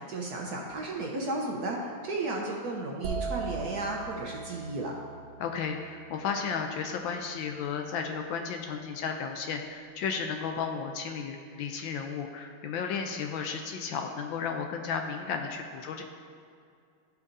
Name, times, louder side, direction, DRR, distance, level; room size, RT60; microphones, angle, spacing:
voice 1, 0.0-4.9, right 2 dB, 60° right, -1 dB, 1.1 m, -34 dB
sound 1, 3.0-6.8, right 5 dB, 80° right, 1.6 m, -39 dB
voice 2, 5.4-16.0, left 6 dB, 75° left, 4 dB, 1.2 m, -33 dB
13.0 x 7.2 x 2.7 m, 2.4 s
omnidirectional pair, 2.4 m